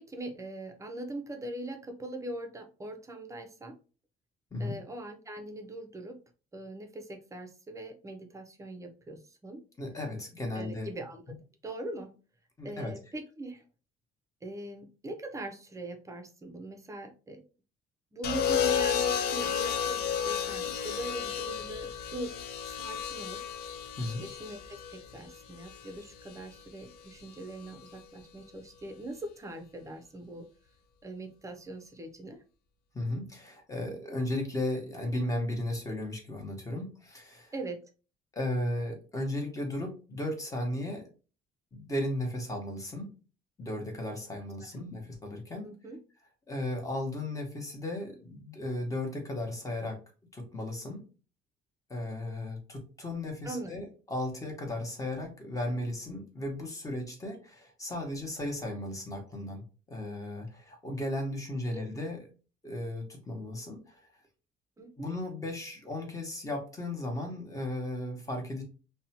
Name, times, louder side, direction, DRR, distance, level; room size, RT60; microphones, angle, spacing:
voice 1, 0.0-3.8 4.6-6.2 6.5-9.6 10.5-11.2 11.6-12.1 12.6-13.6 14.4-17.4 18.1-22.4 22.7-23.4 24.2-30.5 31.0-32.4 37.5-37.8 45.6-46.0 53.4-53.7 61.7-61.8 64.8-65.1, right 1 dB, 20° right, 6 dB, 0.5 m, -41 dB
voice 2, 9.8-10.9 11.3-11.4 12.6-12.9 24.0-24.2 32.9-37.5 38.3-41.1 41.7-43.1 43.6-45.7 46.5-50.0 50.3-51.0 51.9-62.3 62.6-64.1 65.0-68.6, left 1 dB, 20° left, 3 dB, 0.9 m, -35 dB
sound 1, 18.2-26.4 27.6-28.0, left 8 dB, 70° left, 0.4 m, -32 dB
2.6 x 2.1 x 2.7 m, 0.35 s
cardioid pair, 110°, 17 cm